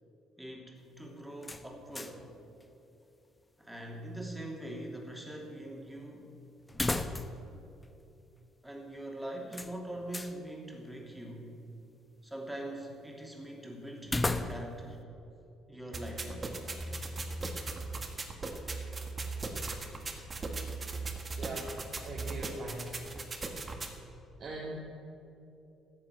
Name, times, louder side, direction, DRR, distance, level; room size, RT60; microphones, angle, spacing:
voice 1, 0.4-2.3 3.6-6.3 8.6-11.5 12.2-15.0 15.7-16.6, right 1 dB, 5° right, 0 dB, 3.0 m, -43 dB
sound 1, 1.4-2.3 2.6-2.7 6.7-7.5 7.8-7.9 9.5-10.4 14.0-14.9, left 2 dB, 20° left, 0.9 m, -34 dB
sound 2, 15.9-23.9, right 3 dB, 35° right, 1.7 m, -38 dB
voice 2, 21.4-21.8 22.0-22.9 24.4-24.8, right 2 dB, 50° right, -4 dB, 2.1 m, -41 dB
13.5 x 7.8 x 8.2 m, 2.7 s
hypercardioid pair, 50°, 0 cm